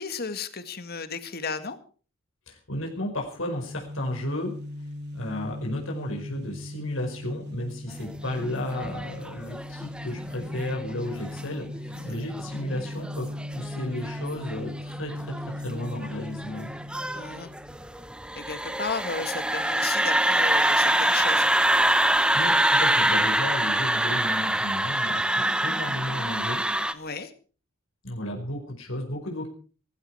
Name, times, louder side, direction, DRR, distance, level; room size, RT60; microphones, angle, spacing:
voice 1, 0.0-1.8 12.0-12.2 17.1-17.5 18.4-21.5 26.9-27.3, left 4 dB, 50° left, 10 dB, 1.9 m, -34 dB
voice 2, 2.5-4.5 5.1-16.7 22.3-26.6 28.0-29.5, left 1 dB, 75° left, 1 dB, 4.9 m, -33 dB
sound 1, 3.4-17.9, left 1 dB, 55° right, 1.6 m, -39 dB
sound 2, 8.1-26.9, right 1 dB, 5° right, 1.0 m, -26 dB
17.5 x 15.5 x 4.7 m, 0.40 s
head